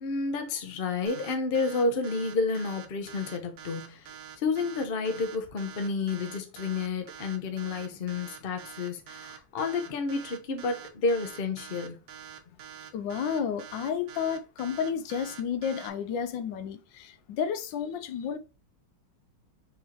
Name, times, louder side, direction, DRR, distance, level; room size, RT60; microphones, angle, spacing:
voice 1, 0.0-4.1 4.4-12.0, left 4 dB, 50° left, 0.6 m, -30 dB
sound 1, 1.1-15.9, right 9 dB, 75° right, 1.4 m, -46 dB
voice 2, 12.9-18.4, left 7 dB, 80° left, 1.3 m, -31 dB
4.7 x 3.7 x 2.8 m
omnidirectional pair, 2.0 m